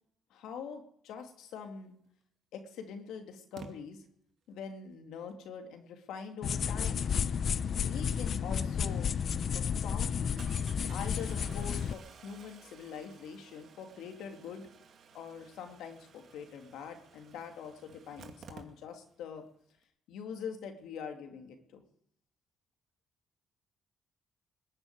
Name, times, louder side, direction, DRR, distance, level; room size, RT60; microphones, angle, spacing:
voice 1, 0.3-1.9 2.5-4.0 4.5-7.1 7.8-9.1 9.5-10.4 10.9-14.7 15.1-19.4 20.1-21.8, left 6 dB, 85° left, 5 dB, 2.7 m, -44 dB
Engine starting, 2.1-2.2 3.6-3.7 8.8-8.9 9.2-9.3 10.4-19.2 19.5-19.6 19.8-19.9, right 5 dB, 65° right, 2.3 m, -54 dB
sound 1, 6.4-11.9, left 7 dB, 55° left, 0.7 m, -32 dB
20.5 x 7.1 x 9.5 m, 0.70 s
cardioid pair, 90°, 0 cm